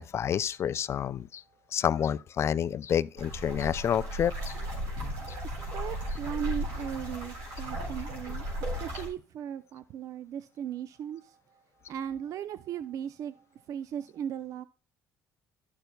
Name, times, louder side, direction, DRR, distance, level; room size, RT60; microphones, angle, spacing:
voice 1, 0.0-1.4 1.7-4.5, left 9 dB, 45° left, 0.4 m, -29 dB
sound 1, 3.2-9.1, equal, 90° right, 3.7 m, -35 dB
voice 2, 5.4-11.6 11.9-14.6, right 9 dB, 60° right, 0.4 m, -38 dB
11.5 x 6.7 x 2.2 m
supercardioid pair, 90°, 6 cm